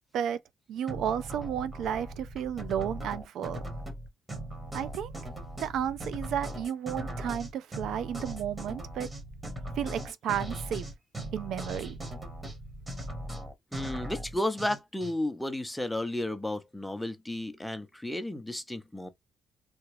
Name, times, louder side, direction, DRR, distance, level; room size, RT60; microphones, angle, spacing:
voice 1, 0.7-3.6 4.7-5.1 5.6-9.1 9.8-10.9 11.3-12.0, right 9 dB, 80° right, 0.3 m, -32 dB
sound 1, 0.9-15.1, right 1 dB, 20° right, 1.4 m, -39 dB
voice 2, 13.7-19.1, left 1 dB, 5° left, 0.7 m, -33 dB
3.3 x 2.4 x 3.2 m
cardioid pair, 90°, 0 cm